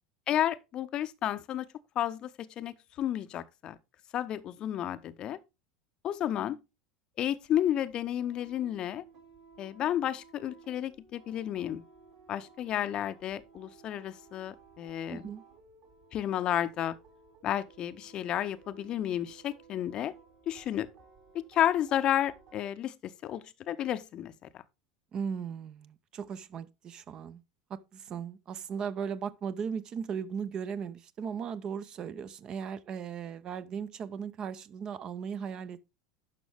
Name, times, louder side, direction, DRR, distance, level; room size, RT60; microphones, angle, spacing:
voice 1, 0.3-1.7 2.0-3.8 4.1-5.4 6.0-6.6 7.2-9.1 9.6-11.8 12.3-15.3 16.1-17.0 17.4-20.1 20.5-20.9 21.3-24.6, left 11 dB, 35° left, 0.6 m, -32 dB
sound 1, 7.4-22.6, right 5 dB, 55° right, 2.7 m, -58 dB
voice 2, 15.1-15.4 25.1-27.4 27.7-35.9, right 7 dB, 35° right, 0.6 m, -37 dB
11.0 x 6.1 x 3.4 m
figure-of-eight pair, 75°, 2 cm